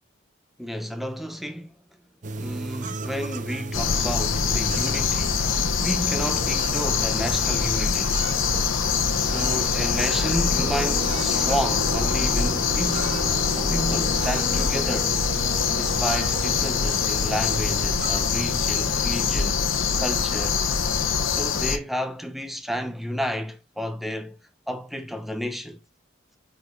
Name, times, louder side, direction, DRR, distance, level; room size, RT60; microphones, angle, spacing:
voice 1, 0.6-1.7 2.4-8.3 9.1-13.2 13.5-15.2 15.7-19.6 20.0-20.6 21.3-24.4 24.7-25.8, equal, ahead, 0.6 m, -31 dB
sound 1, 2.2-19.1, right 3 dB, 40° right, 0.6 m, -35 dB
sound 2, 3.7-21.8, left 6 dB, 85° left, 0.9 m, -24 dB
8.1 x 5.0 x 2.3 m
head